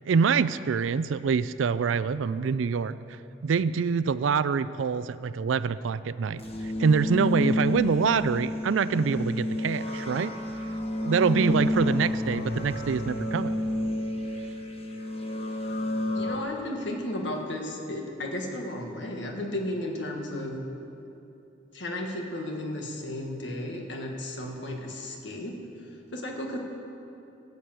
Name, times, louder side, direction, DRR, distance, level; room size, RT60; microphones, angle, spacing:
voice 1, 0.1-3.0 3.4-6.4 6.8-10.3 11.0-13.5, right 5 dB, 85° right, 15 dB, 0.4 m, -25 dB
sound 1, 6.4-16.4, left 1 dB, 30° left, 1.3 m, -30 dB
voice 2, 16.1-20.6 21.7-25.6 26.1-26.6, left 1 dB, 70° left, 1 dB, 1.7 m, -34 dB
16.0 x 8.4 x 7.6 m, 2.8 s
head